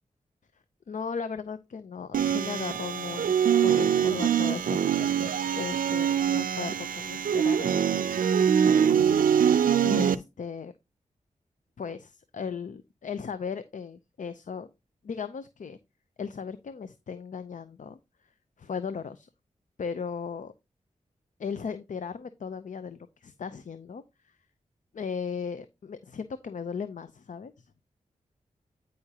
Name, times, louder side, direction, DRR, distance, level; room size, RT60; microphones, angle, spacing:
voice 1, 0.9-7.7 9.8-10.7 11.8-14.7 15.0-15.8 16.2-18.0 18.6-19.3 19.8-20.5 21.4-24.4 24.9-27.7, left 6 dB, 65° left, 12 dB, 0.6 m, -37 dB
sound 1, 2.1-10.2, right 8 dB, 85° right, 0.5 m, -24 dB
9.5 x 4.9 x 2.8 m, 0.24 s
cardioid pair, 50°, 14 cm